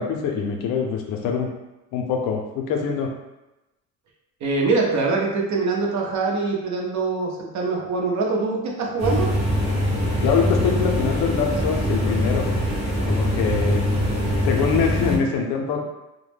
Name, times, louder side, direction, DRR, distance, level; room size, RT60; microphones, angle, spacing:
voice 1, 0.0-1.5 1.9-3.1 10.2-12.5 13.0-13.9 14.5-15.8, left 6 dB, 75° left, 2 dB, 0.6 m, -24 dB
voice 2, 4.4-9.3, right 3 dB, 55° right, -1 dB, 0.7 m, -23 dB
sound 1, 9.0-15.2, equal, 20° right, 0.9 m, -23 dB
2.2 x 2.1 x 3.3 m, 0.99 s
cardioid pair, 100°, 33 cm